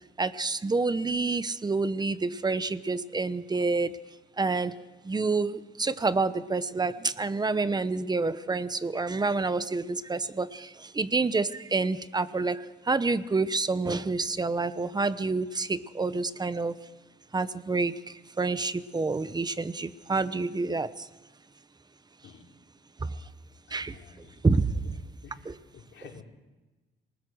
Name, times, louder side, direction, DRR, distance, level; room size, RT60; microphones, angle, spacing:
voice 1, 0.2-3.9 4.4-4.7 5.0-16.7 17.3-21.1 23.0-23.2 23.7-24.7 25.4-25.6, right 3 dB, 20° right, 14 dB, 0.9 m, -28 dB
voice 2, 23.7-25.0 25.2-25.5 25.7-26.2, left 6 dB, 70° left, 1 dB, 3.8 m, -50 dB
26.5 x 19.5 x 6.3 m, 1.2 s
cardioid pair, 115°, 20 cm